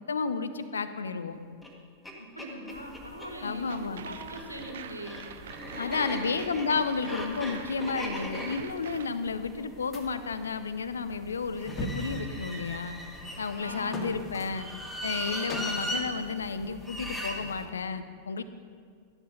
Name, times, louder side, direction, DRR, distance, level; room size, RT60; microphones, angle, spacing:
voice 1, 0.1-1.4 3.4-4.1 5.8-13.0 13.4-14.7 15.0-18.4, left 5 dB, 70° left, 12 dB, 0.7 m, -32 dB
sound 1, 1.6-1.7 2.0-2.1 2.4-3.3 4.2-10.4 11.5-13.8 14.5-16.0 16.8-17.4, equal, 5° left, 1.9 m, -38 dB
voice 2, 2.2-5.3 5.7-6.4 13.6-14.2, equal, 90° left, 2 dB, 1.7 m, -41 dB
sound 2, 2.7-17.7, equal, 25° left, 1.7 m, -44 dB
sound 3, 3.7-9.1, right 8 dB, 60° right, 0.6 m, -45 dB
13.5 x 10.5 x 5.4 m, 2.1 s
figure-of-eight pair, 90°, 0 cm